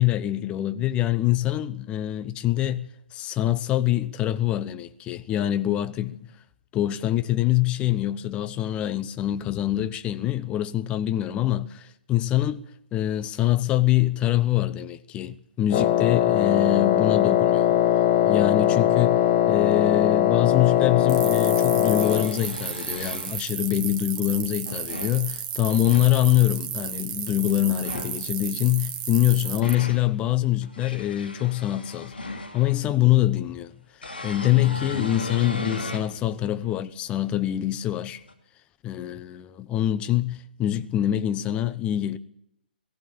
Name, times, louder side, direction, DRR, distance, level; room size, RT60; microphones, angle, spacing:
voice 1, 0.0-6.2 6.7-12.6 12.9-17.8 18.3-19.2 19.5-32.1 32.5-33.7 34.2-38.2 38.8-42.2, left 13 dB, 20° left, 0.9 m, -24 dB
Wind instrument woodwind instrument, 15.7-22.4, left 11 dB, 40° left, 1.7 m, -20 dB
sound 1, 20.8-20.9 21.7-23.4 24.4-25.2 25.6-26.1 27.7-28.2 29.1-30.1 30.6-32.8 34.0-36.1 36.7-36.8 38.3-38.4, left 2 dB, 80° left, 2.7 m, -35 dB
sound 2, 21.1-29.7, right 10 dB, 30° right, 1.9 m, -33 dB
19.0 x 16.0 x 8.6 m
figure-of-eight pair, 125°, 5 cm